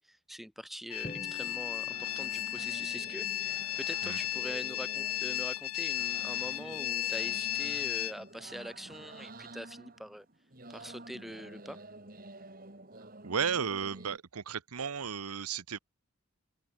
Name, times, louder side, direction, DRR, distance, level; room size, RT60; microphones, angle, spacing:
voice 1, 0.0-10.2 10.7-11.8, equal, ahead, 1.4 m, -44 dB
sound 1, 0.9-8.1, left 13 dB, 90° left, 1.3 m, -34 dB
Drum, 1.0-3.2, equal, 25° left, 5.0 m, -48 dB
sound 2, 1.4-14.2, right 2 dB, 40° right, 3.2 m, -49 dB
voice 2, 13.2-15.8, right 6 dB, 85° right, 0.9 m, -34 dB
open air
head